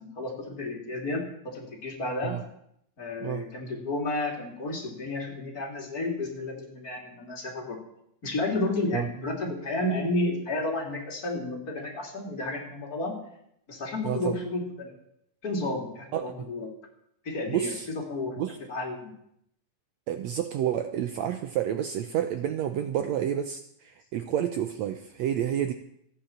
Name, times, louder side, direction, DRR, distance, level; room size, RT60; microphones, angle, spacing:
voice 1, 0.0-2.4 3.0-7.8 8.2-13.2 13.7-14.9 15.4-16.7 17.2-17.7 18.1-18.3 18.7-19.1, left 2 dB, 30° left, 0 dB, 3.2 m, -31 dB
voice 2, 14.0-14.4 16.1-16.3 17.5-17.9 18.4-18.6 20.1-25.7, right 10 dB, 75° right, 8 dB, 1.6 m, -29 dB
14.5 x 9.8 x 7.3 m, 0.75 s
omnidirectional pair, 3.8 m